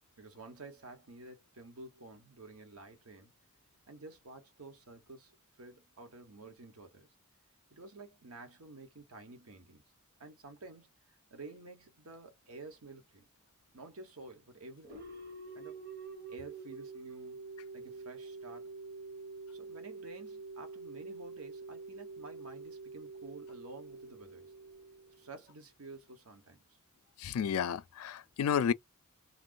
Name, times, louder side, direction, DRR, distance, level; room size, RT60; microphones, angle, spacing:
voice 1, 0.2-3.3 3.9-7.1 7.7-9.8 10.2-13.3 13.7-15.1 15.5-15.8 16.3-17.4 17.7-18.7 19.5-24.5 25.1-26.6, right 3 dB, 80° right, 1.1 m, -51 dB
sound 1, 14.8-25.5, right 3 dB, 45° right, 1.1 m, -47 dB
voice 2, 27.2-28.7, left 8 dB, 75° left, 0.3 m, -31 dB
2.5 x 2.2 x 3.7 m
head